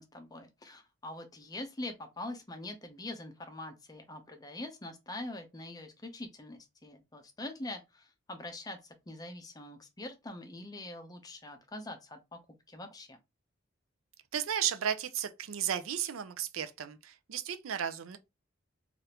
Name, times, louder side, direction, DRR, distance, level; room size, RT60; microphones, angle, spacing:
voice 1, 0.0-12.4 12.7-13.2, left 2 dB, 20° left, 0.5 m, -44 dB
voice 2, 14.3-18.2, right 9 dB, 85° right, 0.4 m, -34 dB
3.3 x 2.5 x 2.8 m
head